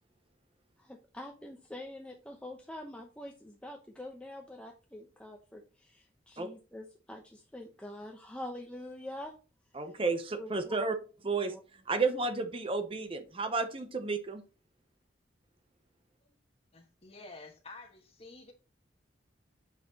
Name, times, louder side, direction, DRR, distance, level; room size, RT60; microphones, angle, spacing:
voice 1, 0.8-9.3 10.4-10.9 11.3-11.6, left 1 dB, 5° left, 0.8 m, -45 dB
voice 2, 9.7-10.9 11.2-11.5 11.9-14.4, right 3 dB, 30° right, 0.7 m, -32 dB
voice 3, 16.7-18.5, left 3 dB, 30° left, 1.4 m, -50 dB
7.3 x 5.7 x 2.8 m
head